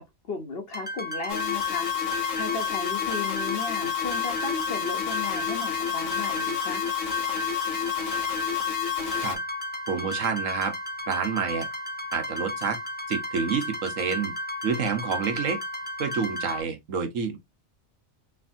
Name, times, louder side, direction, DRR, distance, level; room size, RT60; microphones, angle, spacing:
voice 1, 0.0-2.0 2.3-6.8, left 4 dB, 55° left, 1.0 m, -35 dB
sound 1, 0.7-16.6, left 1 dB, 10° left, 0.4 m, -34 dB
sound 2, 1.3-9.4, left 11 dB, 70° left, 1.2 m, -30 dB
voice 2, 9.9-10.7 11.1-11.7 12.1-12.8 13.1-14.3 14.6-15.6 16.0-17.4, right 6 dB, 75° right, 1.4 m, -28 dB
4.2 x 3.4 x 2.6 m
omnidirectional pair, 1.4 m